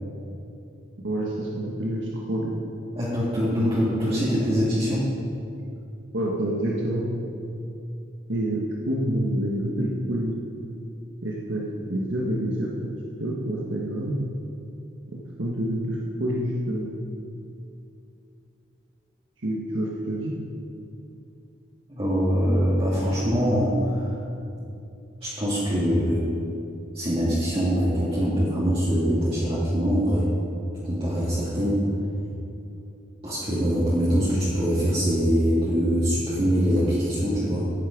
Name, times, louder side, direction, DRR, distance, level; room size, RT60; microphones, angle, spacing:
voice 1, 1.0-2.5 6.1-7.0 8.3-10.3 11.2-12.7 13.2-14.1 15.1-16.9 19.4-20.3, right 1 dB, 75° right, -3 dB, 1.6 m, -27 dB
voice 2, 3.0-5.1 21.9-24.1 25.2-26.3 26.9-30.3 30.8-31.9 33.2-37.7, equal, 30° right, -9 dB, 2.3 m, -23 dB
15.5 x 9.6 x 5.3 m, 2.7 s
head